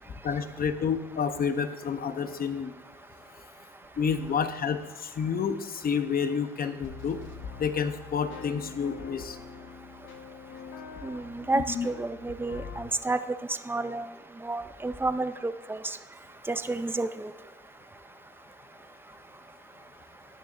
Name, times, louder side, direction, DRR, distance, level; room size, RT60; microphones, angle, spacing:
voice 1, 0.2-2.7 4.0-7.2 7.6-9.4 11.5-11.9, left 6 dB, 50° left, 9 dB, 0.8 m, -29 dB
sound 1, 6.8-12.8, left 5 dB, 75° left, 1.2 m, -44 dB
voice 2, 11.0-13.2 13.7-14.1 14.4-16.0 16.5-17.3, right 2 dB, 10° right, 11 dB, 0.5 m, -30 dB
13.5 x 9.7 x 2.6 m, 1.3 s
cardioid pair, 90°, 20 cm